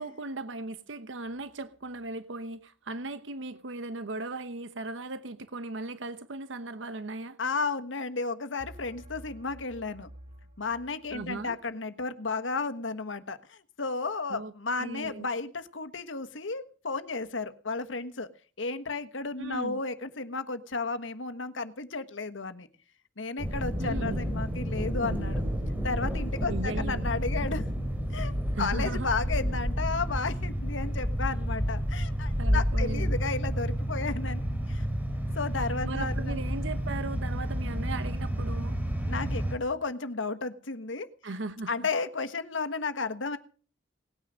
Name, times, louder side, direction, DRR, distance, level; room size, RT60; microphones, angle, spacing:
voice 1, 0.0-7.4 11.1-11.6 14.3-14.5 14.8-15.3 19.4-19.8 23.8-24.2 26.5-27.1 28.5-29.1 32.4-33.2 35.8-38.8 41.2-41.7, right 2 dB, 75° right, 1.0 m, -37 dB
sound 1, 1.2-2.1 8.6-11.6, right 1 dB, 40° right, 5.7 m, -51 dB
voice 2, 7.4-10.1 10.6-18.3 18.6-22.7 23.2-25.4 25.8-27.7 28.1-28.3 28.6-34.4 34.7-34.8 35.3-36.4 39.1-41.1 41.7-43.4, left 4 dB, 80° left, 1.4 m, -33 dB
sound 2, 23.4-39.5, equal, 10° right, 3.2 m, -30 dB
19.0 x 9.7 x 6.4 m
head